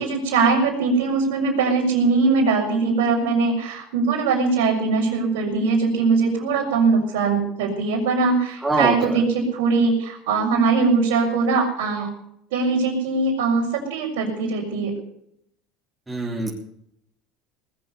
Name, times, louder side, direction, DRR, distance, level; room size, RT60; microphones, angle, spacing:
voice 1, 0.0-12.1 12.5-14.9, right 4 dB, 80° right, -6 dB, 5.1 m, -21 dB
voice 2, 8.6-9.1 16.1-16.5, right 2 dB, 15° right, -2 dB, 3.3 m, -23 dB
19.5 x 7.8 x 8.3 m, 0.74 s
supercardioid pair, 90°, 0 cm